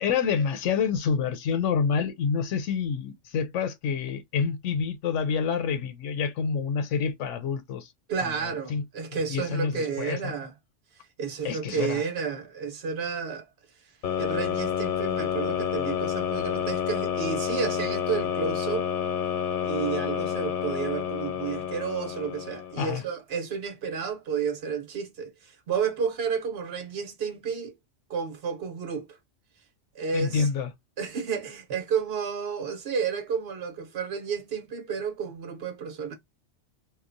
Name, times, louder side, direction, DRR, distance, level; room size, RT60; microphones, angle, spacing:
voice 1, 0.0-7.9 8.4-8.8 9.3-10.3 11.4-12.0 22.8-23.0 30.1-30.7, left 6 dB, 85° left, 0.9 m, -27 dB
voice 2, 8.1-10.5 11.2-13.5 14.2-18.9 19.6-27.7 28.1-29.0 29.9-30.5 31.0-36.1, right 6 dB, 60° right, 1.0 m, -31 dB
sound 1, 14.0-23.0, left 8 dB, 60° left, 0.6 m, -29 dB
2.9 x 2.1 x 2.5 m
omnidirectional pair, 1.2 m